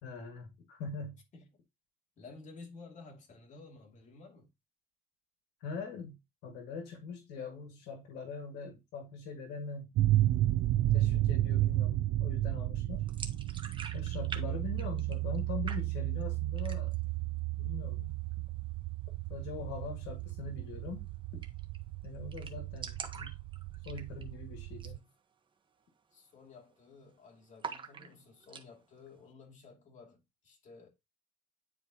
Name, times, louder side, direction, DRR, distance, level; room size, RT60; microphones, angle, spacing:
voice 1, 0.0-1.2 5.6-6.2 6.4-9.9 10.9-13.1 13.9-17.0 17.6-18.4 19.3-21.1 21.3-21.4 22.0-23.4 23.9-25.1, left 4 dB, 90° left, 1.9 m, -42 dB
voice 2, 2.2-4.5 14.2-15.1 24.8-24.9 26.1-30.9, left 4 dB, 45° left, 2.6 m, -54 dB
sound 1, 10.0-25.0, right 15 dB, 75° right, 0.4 m, -33 dB
sound 2, 13.1-14.4 14.7-15.4 15.7-16.2 16.6-17.1 17.4-17.5 17.8-18.5 20.2-20.3 20.6-20.7 21.0-21.1 21.4-21.8 22.0-22.1 22.3-24.4 24.7-25.0 25.3-25.4 26.0-26.3 26.5-27.1 27.6-28.7, right 5 dB, 30° right, 1.2 m, -44 dB
9.8 x 4.5 x 2.9 m
cardioid pair, 110°, 17 cm